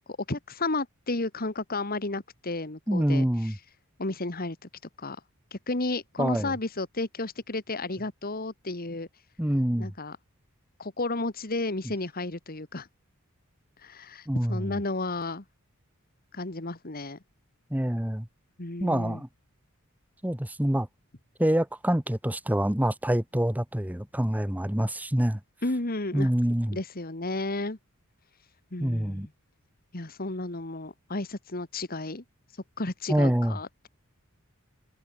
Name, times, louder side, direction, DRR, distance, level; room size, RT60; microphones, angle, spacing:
voice 1, 0.3-3.2 4.0-4.6 5.0-5.2 5.5-9.1 9.8-10.2 10.8-12.9 13.8-15.4 16.3-17.2 18.6-19.2 25.6-26.3 26.7-27.8 28.7-29.3 29.9-32.2 32.8-33.9, left 2 dB, 40° left, 1.8 m, -32 dB
voice 2, 2.9-3.6 6.2-6.5 9.4-9.9 14.3-14.8 17.7-18.3 18.8-19.3 20.2-20.9 21.4-25.4 26.1-26.8 28.8-29.3 33.1-33.5, equal, 5° right, 1.1 m, -26 dB
head